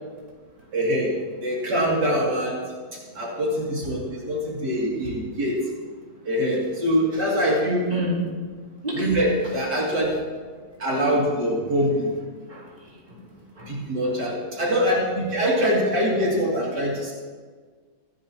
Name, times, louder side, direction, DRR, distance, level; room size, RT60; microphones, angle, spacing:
voice 1, 0.7-2.6 2.9-5.6 6.2-7.9 9.0-10.1 10.8-12.1 13.7-17.1, equal, 75° right, -4 dB, 3.4 m, -24 dB
voice 2, 7.9-8.3 8.8-9.1 12.5-12.7 13.1-13.2 13.6-13.7 14.0-14.1, equal, 25° right, -6 dB, 3.9 m, -29 dB
24.5 x 10.5 x 3.0 m, 1.5 s
omnidirectional pair, 1.8 m